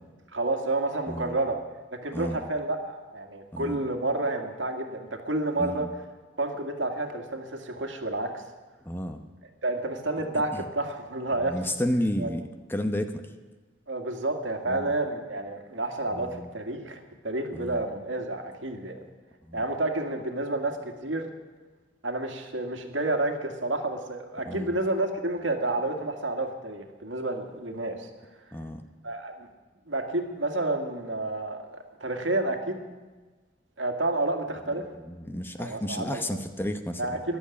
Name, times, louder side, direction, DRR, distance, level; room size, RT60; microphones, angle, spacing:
voice 1, 0.3-1.6 1.9-5.9 6.4-8.4 9.6-11.6 12.2-12.3 13.9-19.0 19.5-21.3 22.0-28.1 29.0-29.5 29.9-32.8 33.8-34.8 35.6-36.4 37.0-37.4, right 2 dB, 85° right, 5 dB, 2.1 m, -30 dB
voice 2, 1.1-1.4 2.1-2.4 3.5-3.8 5.6-5.9 8.9-9.2 10.5-10.6 11.4-13.2 14.7-14.9 16.1-16.5 17.5-17.8 19.5-19.6 24.4-24.7 28.5-28.8 35.1-37.2, equal, 10° left, 7 dB, 0.9 m, -32 dB
14.0 x 11.5 x 8.4 m, 1.3 s
head